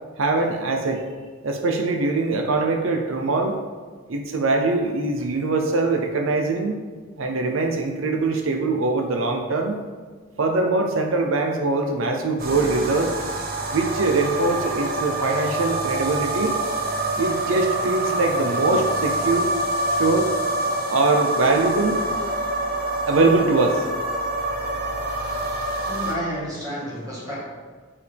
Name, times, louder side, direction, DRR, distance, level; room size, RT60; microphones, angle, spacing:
voice 1, 0.2-1.0 1.4-3.6 4.1-6.8 7.2-9.8 10.4-13.1 13.7-16.6 17.2-19.5 20.0-20.3 20.9-22.0 23.1-23.9, right 3 dB, 80° right, 3 dB, 0.7 m, -22 dB
sound 1, 12.4-26.1, right 1 dB, 45° right, 0.8 m, -26 dB
voice 2, 25.9-27.4, equal, 20° right, -6 dB, 1.7 m, -30 dB
7.1 x 4.8 x 3.4 m, 1.5 s
head